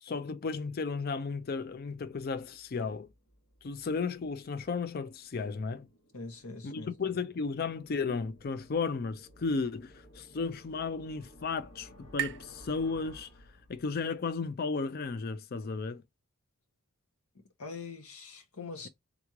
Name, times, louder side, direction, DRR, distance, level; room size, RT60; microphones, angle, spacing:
voice 1, 0.0-3.1 3.6-5.9 6.6-13.3 13.7-16.0, left 4 dB, 45° left, 0.4 m, -34 dB
sound 1, 1.6-14.3, equal, 65° left, 1.5 m, -57 dB
voice 2, 6.1-7.0 17.6-18.9, left 4 dB, 90° left, 1.3 m, -43 dB
sound 2, 9.9-13.6, right 12 dB, 50° right, 0.3 m, -43 dB
3.6 x 3.1 x 3.6 m
head